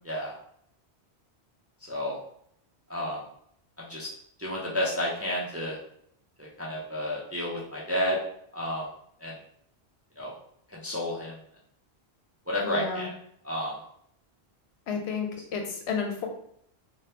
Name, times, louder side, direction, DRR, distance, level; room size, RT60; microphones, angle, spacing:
voice 1, 0.0-0.4 1.9-2.2 2.9-3.2 3.8-4.1 4.4-5.8 6.4-8.2 8.5-8.9 9.2-9.3 10.2-10.3 10.7-11.3 12.5-13.1 13.4-13.7, equal, 20° right, -5 dB, 0.4 m, -31 dB
voice 2, 12.6-13.1 14.9-16.3, left 5 dB, 75° left, 3 dB, 0.9 m, -31 dB
2.9 x 2.2 x 3.3 m, 0.68 s
omnidirectional pair, 1.1 m